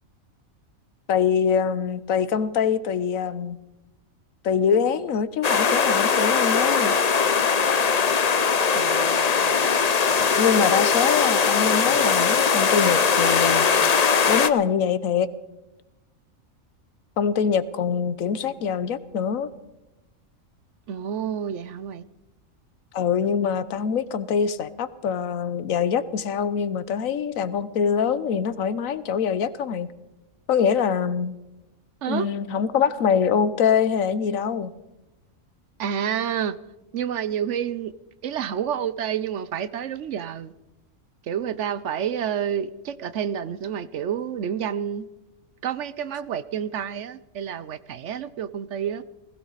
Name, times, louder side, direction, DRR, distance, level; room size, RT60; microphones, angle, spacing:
voice 1, 1.1-3.6 4.4-6.9 10.3-13.7 14.3-15.3 17.2-19.5 22.9-29.9 30.5-31.3 32.1-34.7, left 7 dB, 80° left, 15 dB, 1.2 m, -24 dB
sound 1, 5.4-14.5, left 5 dB, 40° left, 0.6 m, -20 dB
voice 2, 8.7-9.7 20.9-22.0 32.0-32.3 35.8-36.6 36.9-37.9 38.2-40.5 41.2-45.1 45.6-49.0, right 8 dB, 65° right, 14 dB, 1.0 m, -29 dB
20.0 x 16.0 x 4.1 m, 0.98 s
omnidirectional pair, 1.4 m